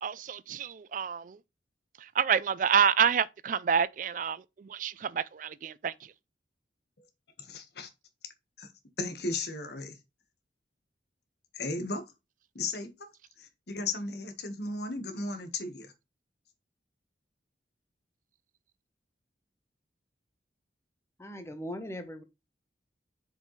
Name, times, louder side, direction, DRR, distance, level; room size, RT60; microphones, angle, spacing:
voice 1, 0.0-1.4 2.2-5.9, right 7 dB, 45° right, 0.3 m, -28 dB
voice 2, 7.4-7.9 8.6-8.7 9.0-9.9 11.5-12.0 12.5-12.9 13.4-15.9, left 3 dB, 60° left, 1.4 m, -35 dB
voice 3, 21.2-22.2, equal, 15° left, 0.9 m, -39 dB
6.6 x 5.2 x 3.2 m
head